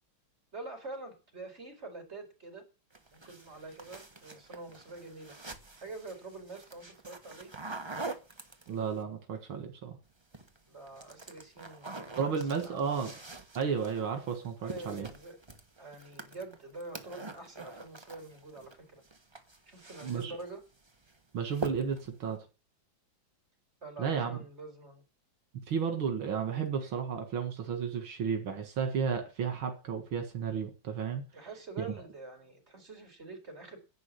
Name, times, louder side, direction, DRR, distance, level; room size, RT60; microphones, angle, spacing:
voice 1, 0.5-2.7 3.1-5.4 5.8-7.5 10.7-13.1 14.6-15.4 15.8-19.0 19.7-20.6 23.8-25.1 31.3-33.8, right 3 dB, 30° right, 3 dB, 5.2 m, -46 dB
sound 1, 2.9-9.0 10.1-10.6 10.9-18.8 19.0-20.5 20.9-21.2 21.5-22.1, right 3 dB, 15° right, 1.1 m, -45 dB
voice 2, 8.7-10.0 12.2-13.1 13.5-15.1 20.0-20.3 21.3-22.4 24.0-24.4 25.5-31.2, right 6 dB, 85° right, 6 dB, 2.6 m, -33 dB
11.0 x 8.8 x 8.4 m, 0.33 s
omnidirectional pair, 2.2 m